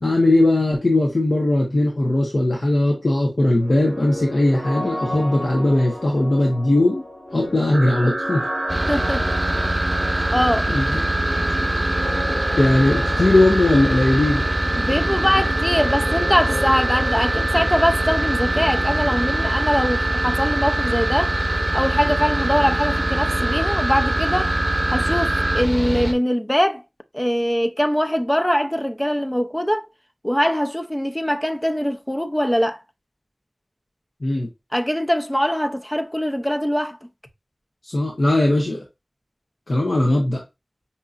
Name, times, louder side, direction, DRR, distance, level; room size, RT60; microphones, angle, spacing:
voice 1, 0.0-7.0 7.3-8.5 10.1-10.3 10.7-11.0 11.5-11.7 12.6-14.4 34.2-34.5 37.8-38.8 39.7-40.4, left 1 dB, 80° left, 0.9 m, -19 dB
sound 1, 3.6-21.2, left 1 dB, 45° left, 2.2 m, -34 dB
sound 2, 7.7-25.6, right 2 dB, 65° right, 0.5 m, -26 dB
Mechanical fan, 8.7-26.1, right 1 dB, 10° right, 0.8 m, -25 dB
voice 2, 8.9-9.6 10.3-10.7 14.8-21.3 21.7-24.5 24.9-26.8 27.1-29.8 30.2-32.8 34.7-37.0, equal, 15° left, 0.4 m, -22 dB
5.4 x 2.7 x 2.4 m
wide cardioid pair, 50°, 0 cm